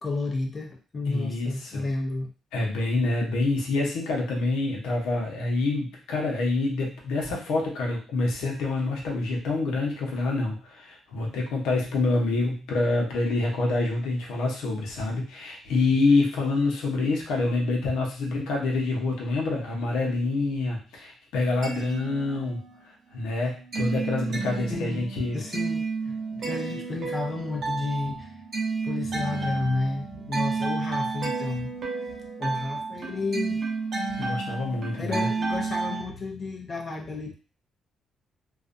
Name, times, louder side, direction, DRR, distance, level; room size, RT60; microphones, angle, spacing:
voice 1, 0.0-2.3 24.7-25.1 25.3-28.4 28.8-31.7 32.4-33.6 34.0-34.3 35.0-37.3, left 3 dB, 40° left, 1 dB, 0.5 m, -32 dB
voice 2, 1.1-1.8 2.5-22.6 22.8-25.4 34.2-35.3, left 3 dB, 90° left, -1 dB, 0.7 m, -27 dB
sound 1, 21.4-22.8 23.2-36.0, right 4 dB, 55° right, 0.8 m, -31 dB
2.4 x 2.2 x 2.5 m, 0.36 s
cardioid pair, 90°, 0 cm